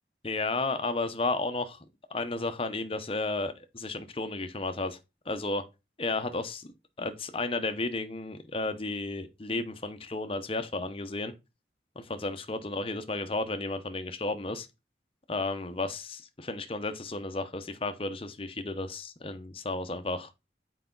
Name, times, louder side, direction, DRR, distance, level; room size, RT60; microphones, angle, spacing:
voice 1, 0.2-1.8 2.1-5.0 5.3-5.6 6.0-6.7 7.0-11.3 12.0-14.7 15.3-20.3, left 2 dB, 30° left, 0.8 m, -33 dB
8.1 x 4.9 x 3.8 m
head